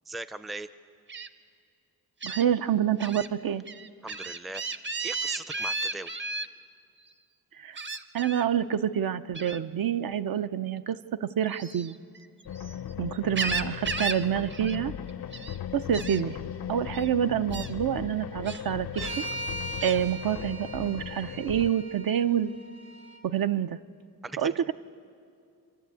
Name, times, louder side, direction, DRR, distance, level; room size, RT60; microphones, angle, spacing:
voice 1, 0.1-0.7 4.0-4.6 5.0-6.3 24.2-24.5, right 2 dB, ahead, 13 dB, 0.4 m, -39 dB
Gull seagull, 1.1-1.3 2.2-2.4 3.0-3.3 3.7-6.5 7.8-8.5 9.4-9.6 11.5-12.7 13.1-14.3 14.5-14.8 15.1-15.6 15.9-16.2 16.9-17.1 17.5-17.7 18.5-19.2 19.8-20.0, right 3 dB, 30° right, 0.7 m, -34 dB
voice 2, 2.2-3.6 7.6-7.8 8.1-12.0 13.0-14.9 15.7-16.4 16.7-19.2 19.8-22.5 23.2-23.8 24.4-24.7, right 9 dB, 70° right, 11 dB, 0.6 m, -27 dB
sound 1, 12.5-21.7, left 10 dB, 85° left, 0.6 m, -38 dB
sound 2, 19.0-23.2, right 1 dB, 85° right, 2.6 m, -40 dB
28.5 x 12.0 x 8.3 m, 2.4 s
wide cardioid pair, 135°, 36 cm